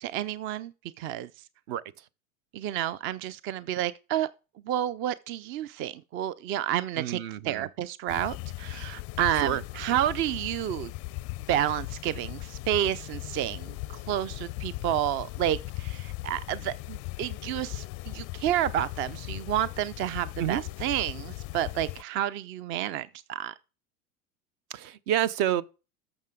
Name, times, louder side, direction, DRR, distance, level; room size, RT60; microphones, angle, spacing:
voice 1, 0.0-0.7 1.0-1.3 2.5-4.3 4.7-7.2 7.4-10.9 11.5-13.7 14.1-23.5, right 11 dB, 30° right, 0.4 m, -30 dB
voice 2, 7.0-7.7 9.3-9.6 20.4-20.6 24.7-25.6, right 11 dB, 50° right, 0.8 m, -28 dB
sound 1, 8.1-22.0, left 20 dB, 35° left, 0.4 m, -38 dB
12.5 x 6.9 x 3.7 m
hypercardioid pair, 85°, 43 cm